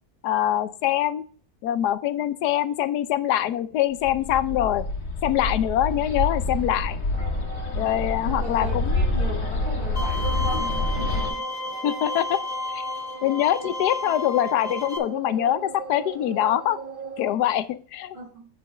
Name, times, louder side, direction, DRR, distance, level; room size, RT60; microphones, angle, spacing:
voice 1, 0.2-1.2 1.6-4.8 5.2-7.0 7.8-9.0 11.8-12.4 12.7-12.8 13.2-16.8 17.2-18.2, left 12 dB, 85° left, 13 dB, 1.2 m, -24 dB
Bird, 4.0-11.3, left 2 dB, 70° left, 2.1 m, -27 dB
sound 1, 7.1-17.4, right 4 dB, 80° right, 0.4 m, -39 dB
voice 2, 7.7-11.4 17.2-17.4 18.1-18.5, right 2 dB, 30° right, -8 dB, 3.2 m, -37 dB
Bowed string instrument, 10.0-15.0, left 2 dB, 15° left, 0.5 m, -32 dB
7.8 x 5.3 x 4.8 m, 0.43 s
omnidirectional pair, 1.7 m